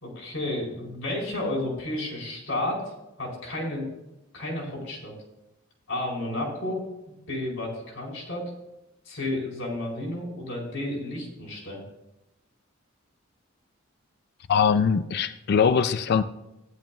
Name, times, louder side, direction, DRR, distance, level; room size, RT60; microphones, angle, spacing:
voice 1, 0.0-2.9 3.2-3.9 4.3-5.1 5.9-8.4 9.1-11.8, left 1 dB, 75° left, -2 dB, 4.1 m, -32 dB
voice 2, 14.5-16.2, left 6 dB, 50° left, 13 dB, 0.4 m, -22 dB
15.5 x 10.5 x 2.3 m, 0.91 s
head